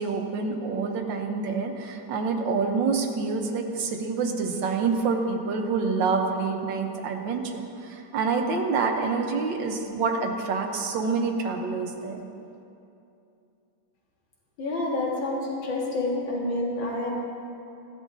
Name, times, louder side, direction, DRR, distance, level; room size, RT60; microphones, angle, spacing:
voice 1, 0.0-12.2, right 4 dB, 75° right, 3 dB, 1.6 m, -27 dB
voice 2, 14.6-17.2, left 2 dB, 85° left, -3 dB, 2.4 m, -28 dB
16.5 x 10.0 x 2.7 m, 2.7 s
omnidirectional pair, 2.1 m